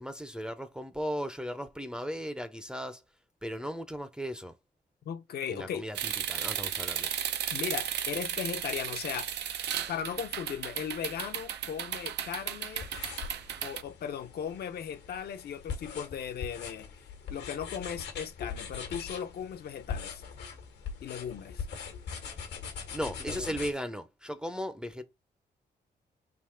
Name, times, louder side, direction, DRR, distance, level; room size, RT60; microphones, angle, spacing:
voice 1, 0.0-3.0 3.4-4.5 5.5-7.1 22.9-25.0, equal, 5° right, 0.5 m, -36 dB
voice 2, 5.1-5.9 7.5-9.4 9.9-12.9 13.6-16.9 17.3-20.2 21.0-21.7, left 8 dB, 65° left, 0.7 m, -37 dB
sound 1, 5.9-13.8, right 9 dB, 90° right, 0.5 m, -35 dB
sound 2, 12.7-23.7, left 6 dB, 85° left, 1.2 m, -41 dB
3.6 x 2.8 x 4.4 m
cardioid pair, 125°, 17 cm